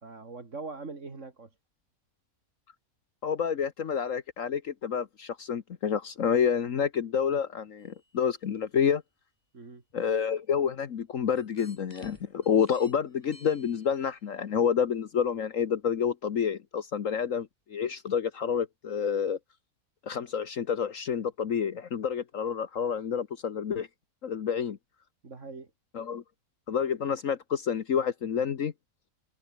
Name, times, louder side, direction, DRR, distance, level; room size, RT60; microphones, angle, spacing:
voice 1, 0.0-1.5 9.5-9.8 25.2-25.7, right 3 dB, 55° right, 3.0 m, -42 dB
voice 2, 3.2-9.0 9.9-19.4 20.0-23.9 24.2-24.8 25.9-26.2 26.7-28.7, left 7 dB, 60° left, 1.4 m, -29 dB
sound 1, 7.8-8.4 9.9-10.0 11.4-14.3 15.2-15.3 15.8-15.9, left 1 dB, 25° left, 8.3 m, -56 dB
omnidirectional pair, 1.6 m